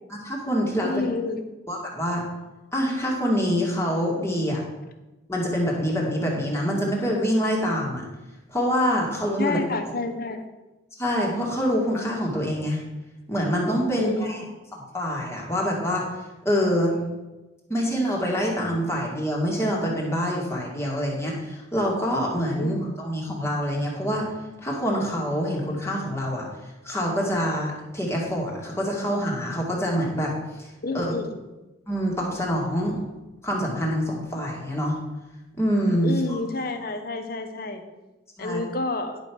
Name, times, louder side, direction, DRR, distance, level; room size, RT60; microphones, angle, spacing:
voice 1, 0.1-0.9 1.7-2.2 2.7-4.6 5.3-8.0 8.5-9.6 11.0-12.8 13.3-14.4 14.7-16.0 16.5-17.0 17.7-24.3 24.6-26.4 26.8-30.3 30.6-30.7 30.9-31.1 31.9-33.0 33.4-35.0 35.6-36.4 38.4-38.6, equal, 15° left, -3 dB, 2.1 m, -25 dB
voice 2, 0.8-1.4 9.4-10.4 14.0-14.3 22.6-22.7 30.8-31.4 36.0-37.8 38.4-39.2, left 3 dB, 50° left, 7 dB, 1.0 m, -29 dB
11.0 x 5.4 x 6.2 m, 1.1 s
head